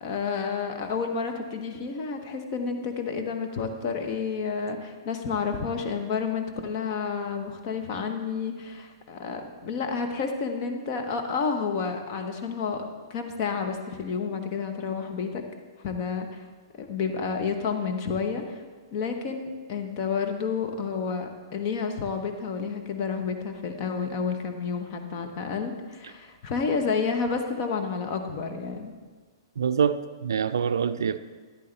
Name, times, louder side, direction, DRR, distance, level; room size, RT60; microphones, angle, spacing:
voice 1, 0.0-12.8 13.1-15.4 15.8-16.4 16.8-18.6 18.9-28.9, left 5 dB, 40° left, 5 dB, 1.1 m, -30 dB
voice 2, 29.6-31.2, right 7 dB, 65° right, 12 dB, 0.4 m, -25 dB
13.5 x 10.5 x 3.4 m, 1.4 s
figure-of-eight pair, 110°, 2 cm